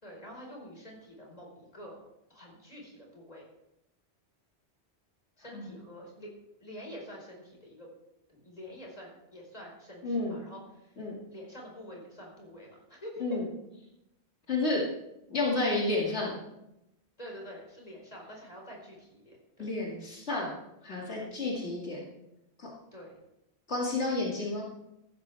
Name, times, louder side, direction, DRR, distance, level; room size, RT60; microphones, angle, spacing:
voice 1, 0.0-2.0 2.3-3.5 5.4-6.3 6.6-7.9 8.3-10.9 11.3-13.3 17.2-19.7 22.9-23.2, equal, 35° left, -1 dB, 4.8 m, -47 dB
voice 2, 10.0-10.4 11.0-11.2 13.2-13.5 14.5-14.8 15.3-16.4 19.6-20.5 20.8-22.0 22.6-22.7 23.7-24.6, left 2 dB, 80° left, -3 dB, 2.7 m, -30 dB
15.0 x 13.5 x 3.5 m, 0.87 s
omnidirectional pair, 1.1 m